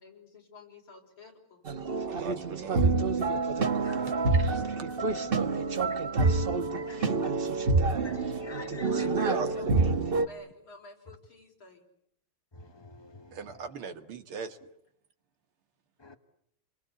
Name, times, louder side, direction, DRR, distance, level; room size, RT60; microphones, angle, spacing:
voice 1, 0.0-1.6 9.3-11.8, left 2 dB, 75° left, 5.7 m, -51 dB
sound 1, 1.7-10.3, right 3 dB, 35° right, 1.1 m, -27 dB
voice 2, 2.1-2.9 4.0-4.6 8.8-9.8 13.3-14.6, right 6 dB, 80° right, 2.6 m, -38 dB
voice 3, 5.5-5.8 6.9-7.3 8.0-9.0 16.0-16.2, left 5 dB, 25° left, 0.6 m, -45 dB
29.0 x 23.5 x 8.3 m
omnidirectional pair, 2.3 m